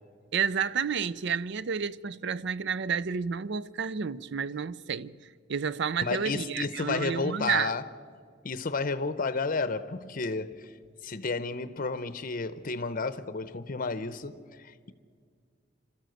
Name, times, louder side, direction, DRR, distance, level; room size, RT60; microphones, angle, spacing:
voice 1, 0.3-5.1 5.5-7.7, right 6 dB, 65° right, 0.5 m, -30 dB
voice 2, 6.0-7.8 8.4-10.7 11.0-14.9, left 4 dB, 45° left, 0.7 m, -32 dB
27.5 x 13.0 x 7.8 m
head